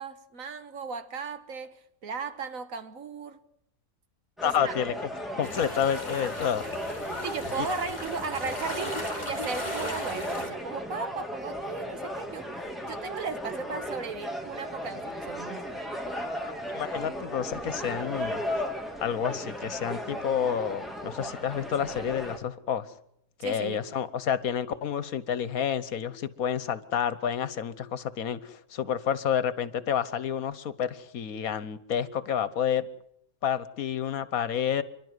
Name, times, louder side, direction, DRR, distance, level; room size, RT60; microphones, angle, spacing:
voice 1, 0.0-3.4 4.4-4.7 7.2-12.5 12.9-15.6 23.4-23.8, right 5 dB, 65° right, 1.8 m, -36 dB
voice 2, 4.4-5.1 5.4-6.6 7.6-7.7 16.7-18.4 19.0-22.9 23.4-32.8 33.4-34.8, left 8 dB, 75° left, 1.5 m, -29 dB
sound 1, 4.4-22.4, equal, ahead, 2.8 m, -36 dB
sound 2, 5.4-10.5, left 1 dB, 30° left, 3.8 m, -37 dB
29.0 x 11.5 x 9.6 m
omnidirectional pair, 1.5 m